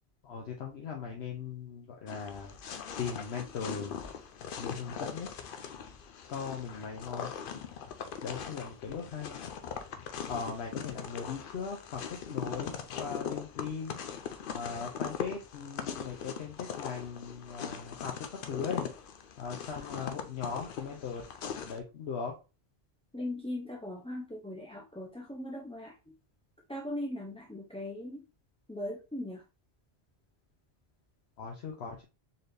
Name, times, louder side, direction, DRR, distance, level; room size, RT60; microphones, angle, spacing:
voice 1, 0.2-2.5 3.0-4.0 4.6-5.3 6.3-7.3 8.2-9.4 10.3-12.7 13.0-14.0 14.5-18.1 18.5-18.9 19.4-21.2 21.6-22.3 31.4-32.0, left 6 dB, 80° left, 0 dB, 1.0 m, -39 dB
sound 1, 2.1-21.8, left 7 dB, 60° left, 0.7 m, -41 dB
voice 2, 23.1-26.1 26.7-28.2 28.7-29.4, left 1 dB, 10° left, -2 dB, 0.4 m, -39 dB
4.1 x 3.3 x 2.6 m, 0.30 s
omnidirectional pair, 1.1 m